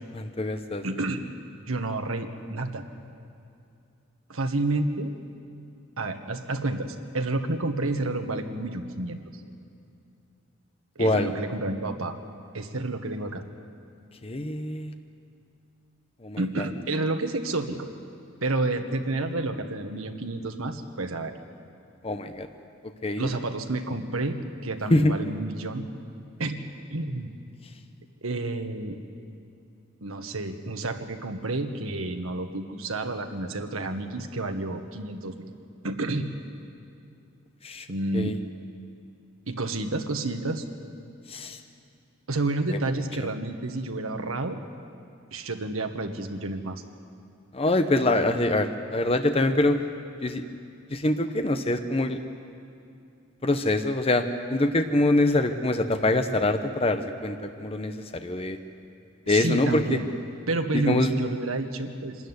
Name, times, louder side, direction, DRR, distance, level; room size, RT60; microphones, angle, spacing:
voice 1, 0.2-0.8 11.0-11.3 14.2-14.9 16.2-16.7 22.0-22.5 23.0-23.3 24.9-25.1 37.6-37.9 38.1-38.3 41.3-41.6 42.7-42.8 47.5-49.8 50.2-50.4 50.9-52.2 53.4-54.2 54.5-58.6 59.3-60.0 60.7-61.1, left 2 dB, 30° left, 7 dB, 0.8 m, -24 dB
voice 2, 0.8-1.2 1.7-2.8 4.3-5.1 6.0-9.2 10.9-12.2 12.5-13.4 16.4-17.9 18.4-21.3 23.2-25.8 26.4-26.6 26.9-27.3 28.2-29.0 30.0-35.5 35.8-36.3 37.9-38.3 39.5-40.6 42.3-44.6 45.3-46.8 59.3-60.1 60.5-62.2, right 2 dB, 85° right, 6 dB, 1.5 m, -30 dB
24.5 x 13.0 x 9.6 m, 2.5 s
head